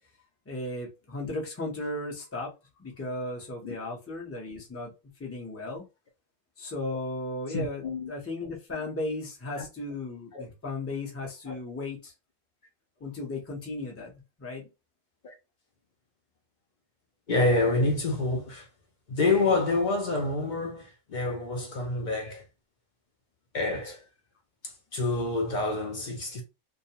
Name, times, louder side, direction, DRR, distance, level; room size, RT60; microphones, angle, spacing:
voice 1, 0.5-2.5 2.8-4.9 5.2-5.8 6.6-12.1 13.0-14.7, left 2 dB, 15° left, 0.6 m, -35 dB
voice 2, 7.5-8.1 9.5-9.7 10.3-10.4 11.5-11.6 15.2-15.3 17.3-18.7 19.1-22.4 23.5-24.0 24.6-26.4, left 2 dB, 60° left, 0.5 m, -27 dB
2.3 x 2.2 x 2.8 m
omnidirectional pair, 1.4 m